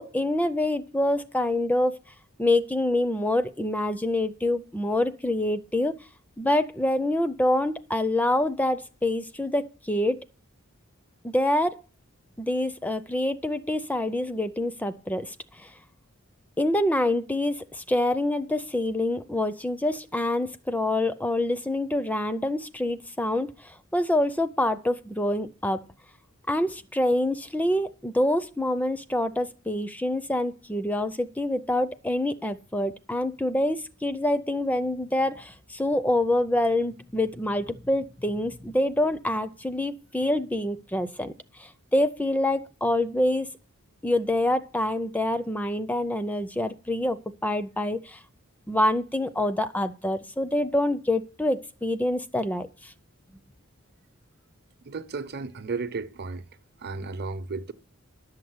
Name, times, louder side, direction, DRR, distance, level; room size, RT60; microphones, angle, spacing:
voice 1, 0.0-2.0 2.4-5.9 6.4-10.2 11.2-11.8 12.4-15.7 16.6-25.8 26.5-43.5 44.0-48.2 48.7-52.9, left 1 dB, 5° left, 0.5 m, -26 dB
voice 2, 54.8-56.5 56.8-57.7, right 4 dB, 50° right, 0.8 m, -34 dB
11.5 x 6.7 x 7.8 m
head